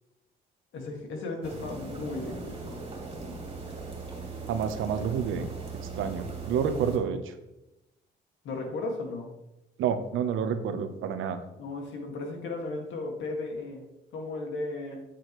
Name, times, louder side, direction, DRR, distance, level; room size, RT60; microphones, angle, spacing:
voice 1, 0.7-2.8 8.4-9.3 11.5-13.9 14.1-15.0, left 2 dB, 75° left, 2 dB, 2.0 m, -35 dB
sound 1, 1.4-7.0, right 4 dB, 30° right, 2.7 m, -39 dB
voice 2, 4.5-5.5 5.9-7.3 9.8-11.4, right 7 dB, 80° right, 9 dB, 0.9 m, -29 dB
8.5 x 7.7 x 3.1 m, 0.92 s
cardioid pair, 90°, 20 cm